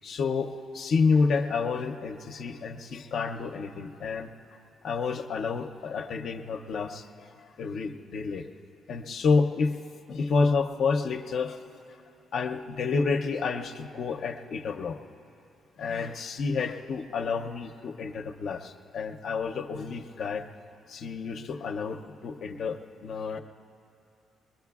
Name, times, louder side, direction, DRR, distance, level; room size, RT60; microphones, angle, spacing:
voice 1, 0.0-4.3 4.8-7.3 7.6-8.5 8.9-9.8 10.1-11.6 12.3-15.0 15.8-20.5 20.9-23.4, left 4 dB, 65° left, 3 dB, 0.6 m, -29 dB
22.0 x 21.5 x 2.4 m, 2.8 s
cardioid pair, 90°, 0 cm